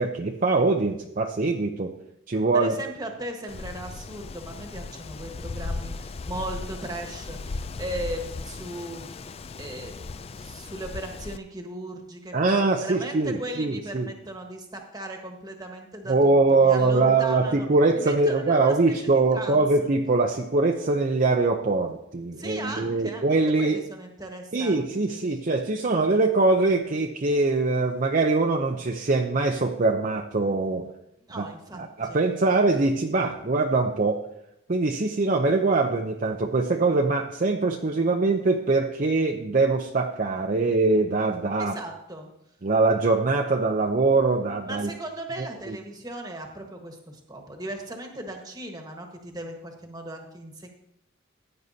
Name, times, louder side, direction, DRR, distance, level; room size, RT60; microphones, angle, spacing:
voice 1, 0.0-1.9 2.3-2.8 12.3-14.1 16.1-23.8 24.5-30.9 31.4-31.5 31.8-34.2 34.7-41.7 42.6-44.9 45.7-45.8, right 3 dB, 40° right, 2 dB, 0.6 m, -23 dB
voice 2, 2.5-9.3 9.6-17.7 17.9-19.9 22.3-25.2 31.3-32.2 41.6-42.3 44.7-50.7, right 1 dB, 20° right, 3 dB, 1.4 m, -37 dB
Wind, 3.5-11.4, left 3 dB, 30° left, 0.3 m, -37 dB
15.0 x 9.2 x 2.8 m, 0.80 s
head